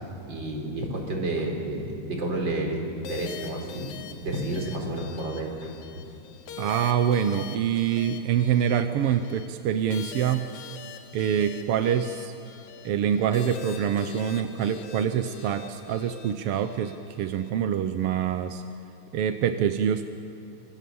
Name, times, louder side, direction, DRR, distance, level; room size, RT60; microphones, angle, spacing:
voice 1, 0.3-2.8 3.1-6.1, right 1 dB, 35° right, 1 dB, 4.5 m, -31 dB
sound 1, 3.0-17.5, left 8 dB, 80° left, 2.6 m, -44 dB
voice 2, 6.6-10.5 11.1-12.3 12.8-18.6 19.1-20.1, right 9 dB, 70° right, 9 dB, 1.4 m, -25 dB
25.5 x 25.5 x 7.0 m, 2.9 s
omnidirectional pair, 3.4 m